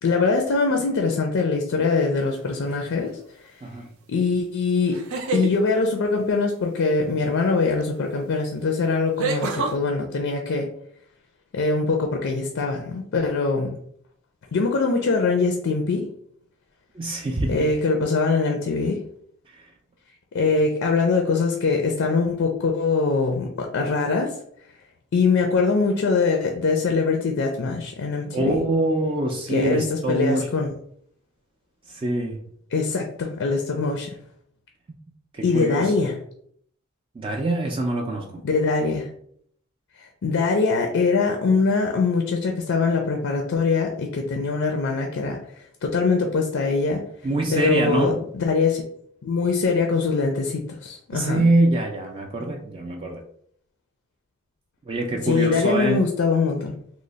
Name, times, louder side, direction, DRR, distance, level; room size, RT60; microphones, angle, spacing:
voice 1, 0.0-3.1 4.1-5.0 5.3-10.7 11.5-13.7 14.5-16.1 17.5-19.0 20.3-24.4 25.1-28.6 29.5-30.7 32.7-34.1 35.4-36.2 38.4-39.1 40.0-45.4 45.8-47.0 47.5-48.8 49.2-51.5 55.2-56.7, left 4 dB, 65° left, 3 dB, 0.4 m, -22 dB
sound 1, 2.3-2.7 4.9-5.5 7.8-7.9 9.2-9.7, right 3 dB, 85° right, 0.6 m, -26 dB
voice 2, 17.0-17.5 19.6-19.7 28.3-30.5 31.9-32.5 35.3-35.9 37.2-38.3 47.2-48.2 51.1-53.2 54.9-56.0, right 1 dB, 25° right, 1 dB, 0.3 m, -24 dB
3.1 x 2.0 x 3.8 m, 0.66 s
head